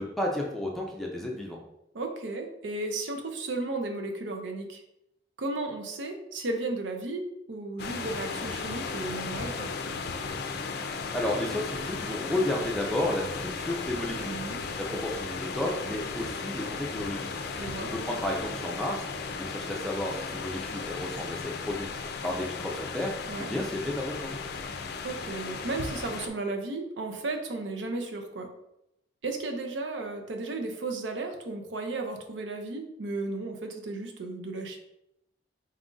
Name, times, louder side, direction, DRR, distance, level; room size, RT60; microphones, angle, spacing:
voice 1, 0.0-1.6 11.1-14.4 14.8-17.3 17.8-19.0 19.3-21.9 22.2-23.1 23.4-24.3, left 1 dB, ahead, -1 dB, 0.5 m, -32 dB
voice 2, 1.9-4.8 5.4-9.7 14.2-14.6 17.5-17.9 23.3-23.5 25.0-28.5 29.2-34.8, right 2 dB, 90° right, 4 dB, 0.6 m, -34 dB
sound 1, 7.8-26.3, left 4 dB, 60° left, 0.4 m, -36 dB
4.1 x 2.4 x 3.8 m, 0.84 s
head